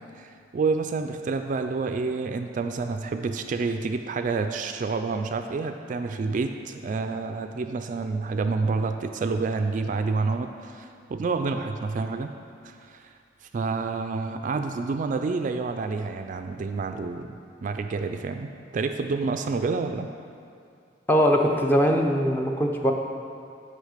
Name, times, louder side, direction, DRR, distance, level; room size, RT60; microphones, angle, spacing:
voice 1, 0.2-12.3 12.6-13.1 13.5-20.1, right 4 dB, 45° right, 7 dB, 0.3 m, -28 dB
voice 2, 21.1-22.9, equal, 10° left, 2 dB, 0.6 m, -21 dB
6.5 x 5.5 x 6.5 m, 2.5 s
head